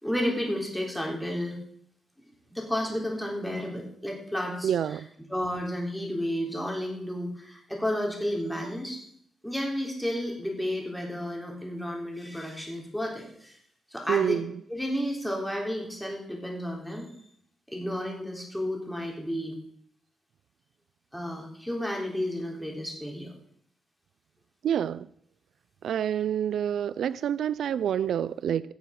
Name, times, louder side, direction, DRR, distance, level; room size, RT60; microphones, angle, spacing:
voice 1, 0.0-1.6 2.5-5.0 5.3-9.0 9.4-13.6 13.9-14.4 14.7-17.1 17.7-19.6 21.1-23.3, equal, 5° left, 3.8 m, -32 dB
voice 2, 4.6-5.1 14.1-14.5 24.6-25.1 25.8-28.6, right 9 dB, 80° right, 0.4 m, -27 dB
16.5 x 7.0 x 5.9 m
cardioid pair, 120°, 0 cm